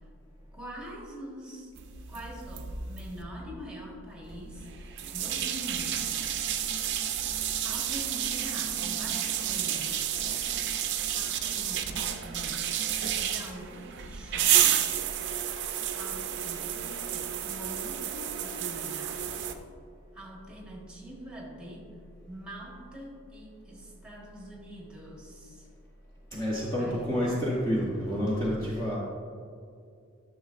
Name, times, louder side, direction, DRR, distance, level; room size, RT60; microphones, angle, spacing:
voice 1, 0.5-1.7 2.1-4.7 5.1-6.1 7.6-10.6 11.1-12.7 13.2-14.9 15.9-19.3 20.1-21.9 22.3-25.7 26.8-27.4, equal, 5° right, -3 dB, 1.3 m, -44 dB
sound 1, 1.8-3.2 4.3-19.5, right 10 dB, 50° right, 0.5 m, -31 dB
voice 2, 26.3-29.0, equal, 15° left, -6 dB, 0.8 m, -29 dB
11.5 x 6.3 x 2.5 m, 2.4 s
head